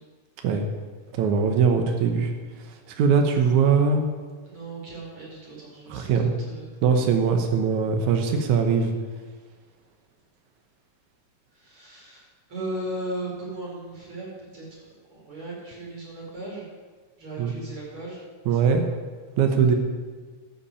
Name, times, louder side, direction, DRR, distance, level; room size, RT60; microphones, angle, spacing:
voice 1, 1.1-2.3 3.0-4.0 5.9-6.3 6.8-8.9 17.4-17.6 18.5-18.8 19.4-19.8, right 6 dB, 80° right, 5 dB, 2.5 m, -21 dB
voice 2, 4.5-6.7 11.5-14.3 14.5-16.7 17.2-18.2 18.5-18.6, right 1 dB, 45° right, -4 dB, 5.6 m, -37 dB
13.0 x 7.2 x 8.7 m, 1.5 s
omnidirectional pair, 3.4 m